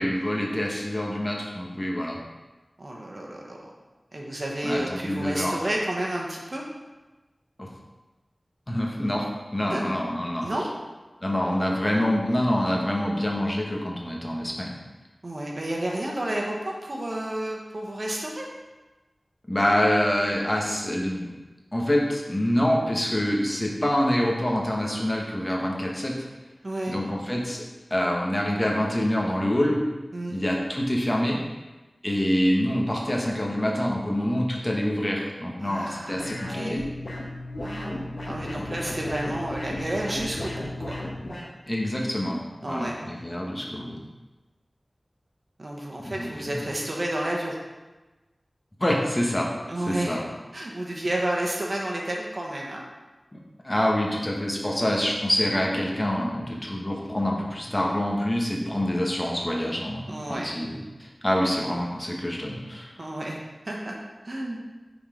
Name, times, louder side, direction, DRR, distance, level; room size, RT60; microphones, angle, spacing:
voice 1, 0.0-2.2 4.6-5.6 7.6-7.7 8.7-9.3 9.5-10.5 11.2-14.7 19.5-21.3 21.7-26.3 26.9-27.6 27.9-29.8 30.3-31.4 32.0-36.8 41.7-44.0 46.0-46.6 48.8-49.5 49.9-50.2 53.3-53.4 53.6-62.9, equal, 25° left, -2 dB, 1.3 m, -26 dB
voice 2, 2.8-3.7 4.1-6.6 9.7-9.8 10.4-10.7 15.2-18.5 26.6-27.0 30.1-30.4 35.6-36.9 37.6-41.0 42.6-43.0 45.6-47.6 49.7-50.2 50.5-52.8 60.1-60.5 63.0-64.0 64.3-64.6, right 1 dB, 55° right, -1 dB, 1.1 m, -31 dB
sound 1, 36.2-41.5, left 1 dB, 60° left, 1.2 m, -34 dB
5.7 x 4.3 x 5.0 m, 1.2 s
wide cardioid pair, 45°, 0 cm